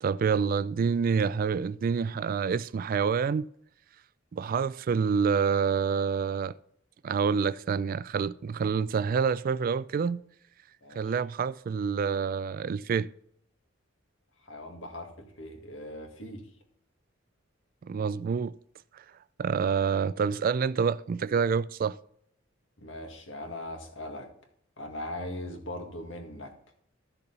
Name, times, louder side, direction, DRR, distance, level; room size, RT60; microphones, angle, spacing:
voice 1, 0.0-3.5 4.3-6.6 7.0-10.2 11.0-13.1 17.8-18.6 18.9-19.0 19.4-22.0, right 6 dB, 45° right, 0.3 m, -27 dB
voice 2, 14.4-16.5 22.8-24.3 24.8-26.5, left 1 dB, 70° left, 2.0 m, -40 dB
13.5 x 6.8 x 4.0 m
head